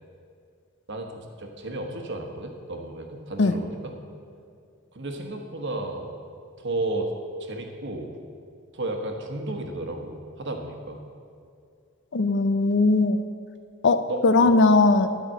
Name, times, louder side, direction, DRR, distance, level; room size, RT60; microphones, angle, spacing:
voice 1, 0.9-4.0 4.9-6.1 6.6-7.1 7.4-8.1 8.7-11.0 14.1-14.6, right 2 dB, 55° right, 3 dB, 1.2 m, -33 dB
voice 2, 12.1-13.2 13.8-15.1, left 3 dB, 55° left, 11 dB, 0.5 m, -19 dB
12.5 x 5.0 x 7.6 m, 2.3 s
head